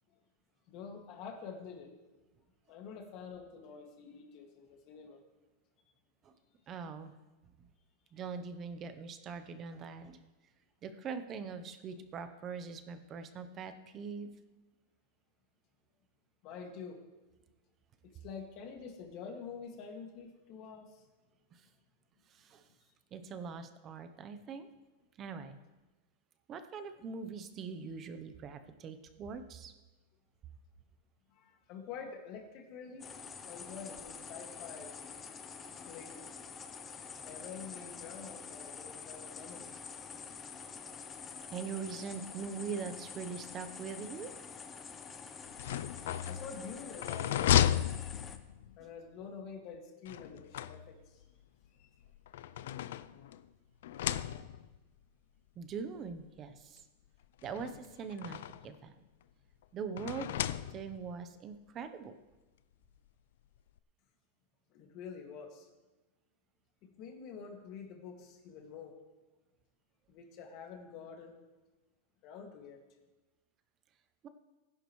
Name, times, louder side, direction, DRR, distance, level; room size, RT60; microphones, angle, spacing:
voice 1, 0.7-2.0 2.7-5.2 16.4-17.0 18.0-21.1 31.3-33.1 33.4-34.9 35.8-36.3 37.2-39.7 46.2-48.2 48.8-51.2 51.8-51.9 64.7-65.7 66.8-69.0 70.1-71.4 72.2-72.8, left 6 dB, 35° left, 2 dB, 2.1 m, -47 dB
voice 2, 6.7-7.1 7.6-7.7 8.1-10.2 10.8-14.3 21.5-21.7 22.3-22.7 23.1-24.7 25.2-25.6 26.5-29.7 41.5-44.3 55.6-56.8 57.4-58.9 59.7-60.4 60.7-62.2 74.2-74.3, right 5 dB, 20° right, 9 dB, 0.8 m, -42 dB
sound 1, 33.0-48.4, left 5 dB, 15° left, 0.7 m, -47 dB
sound 2, 45.5-48.8 50.1-51.2 52.1-53.5 53.8-54.8 55.7-55.8 56.1-56.2 57.4-58.8 60.0-61.1, left 11 dB, 70° left, 0.5 m, -34 dB
19.5 x 11.0 x 3.2 m, 1.1 s
supercardioid pair, 170°, 0 cm